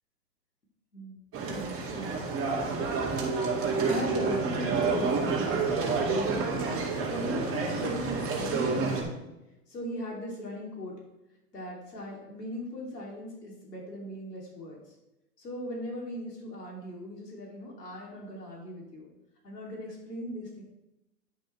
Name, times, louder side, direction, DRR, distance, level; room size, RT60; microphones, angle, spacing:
sound 1, 1.3-9.0, right 4 dB, 30° right, 2.1 m, -29 dB
voice 1, 1.4-2.4 3.8-9.3 9.7-11.0 11.5-14.8 15.4-19.1 19.4-20.6, left 1 dB, 85° left, -2 dB, 2.8 m, -38 dB
10.5 x 6.1 x 3.2 m, 0.94 s
hypercardioid pair, 110°, 47 cm